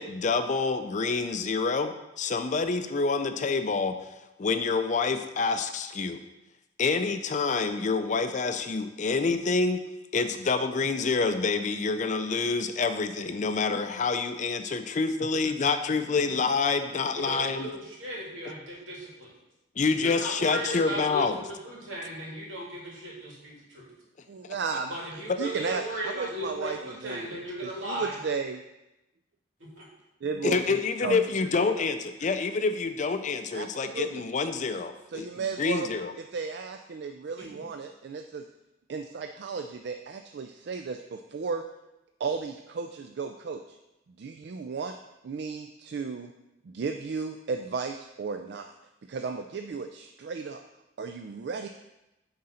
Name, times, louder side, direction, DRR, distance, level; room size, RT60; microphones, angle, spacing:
voice 1, 0.0-3.9 4.4-6.2 6.8-9.8 10.1-17.7 19.8-21.4 30.4-35.3 35.6-36.1, left 4 dB, 40° left, 9 dB, 0.4 m, -27 dB
voice 2, 17.1-19.3 19.8-23.8 24.9-28.2 29.8-29.9 37.4-37.6, right 1 dB, 85° right, -4 dB, 2.6 m, -36 dB
voice 3, 24.3-24.9 25.4-28.6 30.2-31.2 31.5-31.7 33.5-34.3 35.1-35.9 36.2-38.4 38.9-41.6 42.2-43.8 44.2-44.9 45.2-46.3 46.6-48.7 49.1-50.6 51.0-51.7, right 5 dB, 55° right, 5 dB, 0.3 m, -34 dB
9.5 x 3.8 x 4.3 m, 0.95 s
head